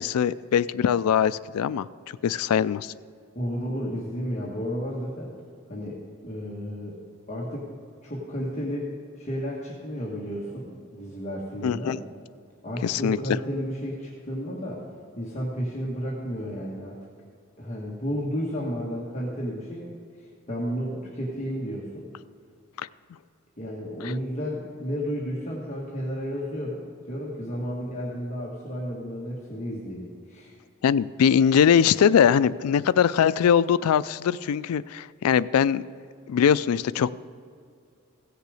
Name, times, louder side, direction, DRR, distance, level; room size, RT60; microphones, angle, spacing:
voice 1, 0.0-1.9 2.2-2.9 11.6-12.0 12.8-13.2 22.8-22.9 30.8-35.8 36.3-37.1, left 8 dB, 90° left, 18 dB, 0.3 m, -21 dB
voice 2, 3.3-5.3 5.7-7.0 7.3-7.7 8.0-12.0 12.6-14.9 15.1-17.0 17.6-22.1 23.6-30.5, equal, 30° left, -4 dB, 1.3 m, -32 dB
16.0 x 6.7 x 4.9 m, 2.2 s
head